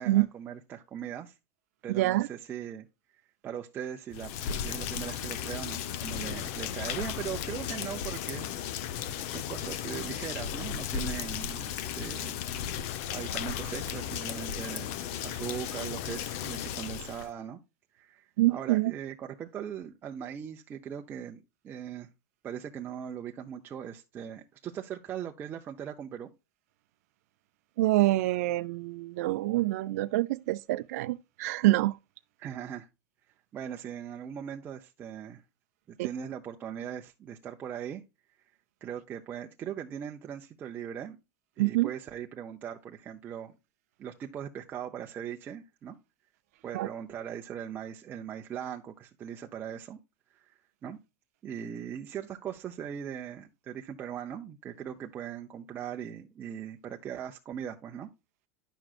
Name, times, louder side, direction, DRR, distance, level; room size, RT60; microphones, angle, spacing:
voice 1, 0.0-1.3 1.8-2.9 3.4-14.9 15.2-17.6 17.9-22.1 22.4-26.3 32.4-32.9 33.5-35.4 35.9-38.0 38.8-41.2 41.6-43.6 44.0-46.0 46.6-50.0 50.3-50.5 50.8-51.0 51.4-58.1, right 9 dB, 25° right, 0.7 m, -40 dB
voice 2, 1.9-2.3 18.4-18.9 27.8-32.0 36.0-36.1 41.6-41.9 46.7-46.9, right 17 dB, 75° right, 0.4 m, -26 dB
Rain, 4.1-17.3, left 9 dB, 60° left, 0.8 m, -35 dB
10.0 x 6.1 x 2.4 m
supercardioid pair, 150°, 8 cm